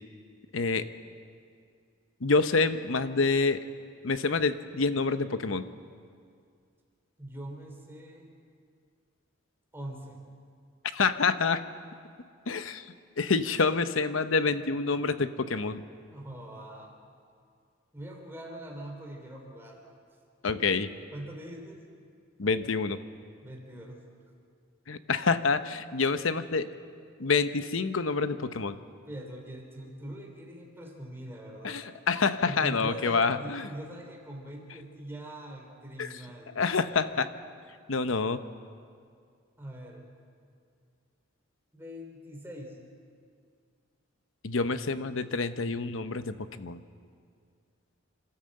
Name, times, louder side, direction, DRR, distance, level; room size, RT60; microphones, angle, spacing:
voice 1, 0.5-0.8 2.2-3.6 4.0-5.6 10.9-11.6 12.5-12.8 13.2-15.8 20.4-20.9 22.4-23.0 24.9-26.7 27.2-28.7 31.6-33.7 36.0-36.1 36.6-37.3 37.9-38.4 44.4-46.8, left 4 dB, 80° left, 11 dB, 0.8 m, -27 dB
voice 2, 7.2-8.3 9.7-10.2 16.1-16.9 17.9-19.9 21.1-21.8 23.4-24.0 29.1-31.8 32.5-36.6 39.6-40.0 41.7-42.8, right 1 dB, 10° right, 1 dB, 3.1 m, -42 dB
26.5 x 13.0 x 7.7 m, 2.2 s
head